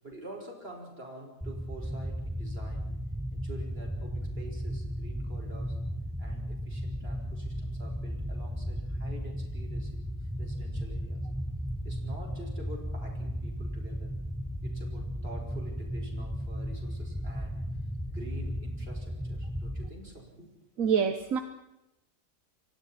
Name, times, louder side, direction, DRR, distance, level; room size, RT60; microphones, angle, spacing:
voice 1, 0.0-2.9 3.3-5.8 6.2-11.2 11.8-14.1 14.6-17.6 18.1-20.5, right 2 dB, 45° right, 1 dB, 5.7 m, -47 dB
sound 1, 1.4-19.9, equal, ahead, 0.8 m, -35 dB
voice 2, 20.8-21.4, right 7 dB, 75° right, 8 dB, 1.6 m, -26 dB
29.0 x 24.0 x 4.3 m, 0.88 s
omnidirectional pair, 1.4 m